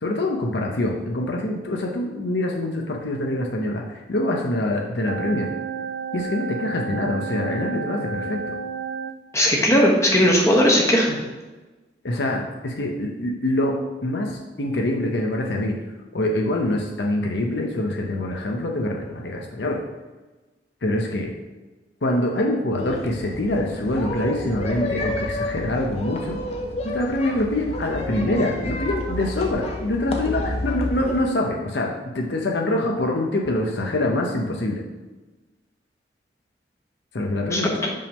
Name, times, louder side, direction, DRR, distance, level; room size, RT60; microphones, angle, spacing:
voice 1, 0.0-5.5 6.1-8.4 12.0-13.8 14.0-15.7 16.1-19.8 20.8-21.3 22.0-26.4 26.8-31.9 32.1-34.8 37.1-37.9, left 1 dB, 75° left, 0 dB, 0.7 m, -25 dB
sound 1, 5.1-9.2, right 5 dB, 75° right, 0.3 m, -31 dB
voice 2, 9.3-11.2 37.5-37.9, equal, 15° left, -2 dB, 1.0 m, -18 dB
sound 2, 22.8-31.2, left 1 dB, 35° left, 0.7 m, -30 dB
5.3 x 3.6 x 5.4 m, 1.2 s
head